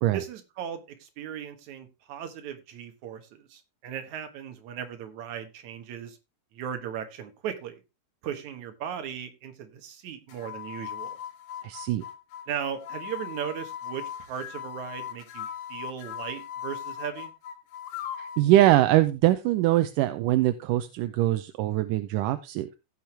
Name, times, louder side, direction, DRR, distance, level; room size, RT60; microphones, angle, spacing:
voice 1, 0.1-6.2 6.5-7.8 8.2-11.2 12.5-17.3, right 9 dB, 65° right, 7 dB, 2.7 m, -37 dB
sound 1, 10.3-18.5, left 9 dB, 70° left, 2.3 m, -39 dB
voice 2, 11.6-12.0 18.2-22.8, right 14 dB, 85° right, 11 dB, 2.2 m, -23 dB
16.0 x 6.2 x 3.3 m, 0.26 s
omnidirectional pair, 3.8 m